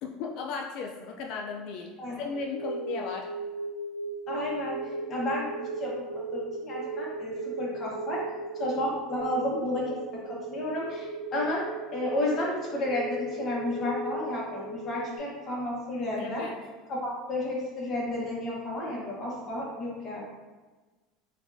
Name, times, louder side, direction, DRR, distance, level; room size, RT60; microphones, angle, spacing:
voice 1, 0.0-3.3 16.2-16.6, left 4 dB, 50° left, 1 dB, 0.3 m, -36 dB
sound 1, 2.3-15.2, right 2 dB, 90° right, 0.5 m, -37 dB
voice 2, 4.3-4.8 5.1-5.5 5.8-8.2 8.5-10.0 10.2-11.6 11.9-16.5 16.9-20.2, left 1 dB, 25° left, -4 dB, 1.0 m, -32 dB
5.0 x 2.3 x 2.6 m, 1.3 s
cardioid pair, 170°, 0 cm